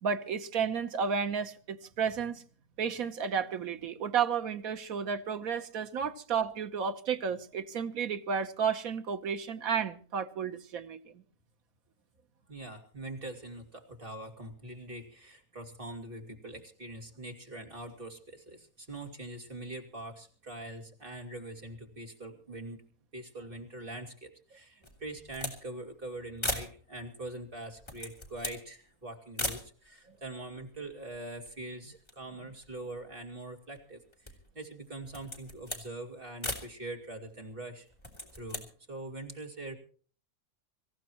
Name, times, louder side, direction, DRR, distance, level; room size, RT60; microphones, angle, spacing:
voice 1, 0.0-2.4 2.8-11.2, right 6 dB, 75° right, 1.5 m, -32 dB
voice 2, 12.5-22.8 23.1-37.9 38.3-39.7, right 2 dB, 40° right, 2.8 m, -43 dB
sound 1, 24.8-25.6 25.9-26.0 26.4-26.8 27.6-28.7 29.4-29.7 30.4-30.5 30.7-31.6 32.0-33.2 33.8-34.5 35.0-35.9 36.4-36.7 37.9-38.7, left 1 dB, 20° left, 3.0 m, -38 dB
25.5 x 15.0 x 3.0 m
omnidirectional pair, 1.5 m